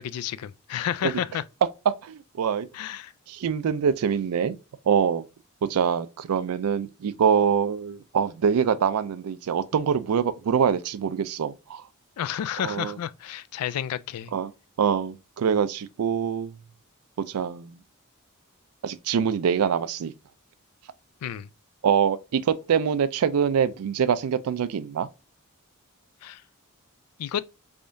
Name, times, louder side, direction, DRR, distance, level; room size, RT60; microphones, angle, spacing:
voice 1, 0.0-1.4 2.7-3.1 12.2-14.3 21.2-21.5 26.2-26.4 27.2-27.4, left 10 dB, 80° left, 0.3 m, -31 dB
voice 2, 1.9-2.7 3.3-4.6 4.9-5.2 5.7-11.8 12.6-13.0 14.3-14.5 14.8-16.5 17.3-17.8 18.8-20.1 21.8-25.1, right 7 dB, 80° right, 0.4 m, -24 dB
3.6 x 3.4 x 2.6 m
head